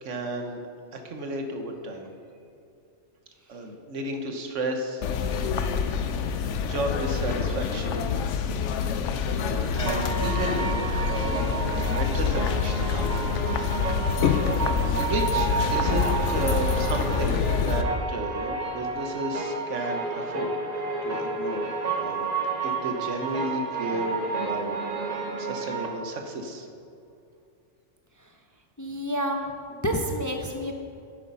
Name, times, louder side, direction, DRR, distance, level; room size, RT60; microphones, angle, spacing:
voice 1, 0.0-0.6 0.9-2.1 3.5-5.0 6.2-6.4 6.6-8.2 9.2-13.1 14.8-20.5 21.0-21.7 21.9-22.3 22.6-26.7, right 2 dB, 80° right, 4 dB, 1.4 m, -33 dB
sound 1, 5.0-17.8, left 6 dB, 75° left, 1.0 m, -26 dB
sound 2, 9.9-25.9, right 4 dB, 35° right, 1.1 m, -31 dB
voice 2, 28.8-30.7, equal, 20° left, 3 dB, 0.5 m, -29 dB
10.0 x 8.2 x 5.4 m, 2.6 s
omnidirectional pair, 1.2 m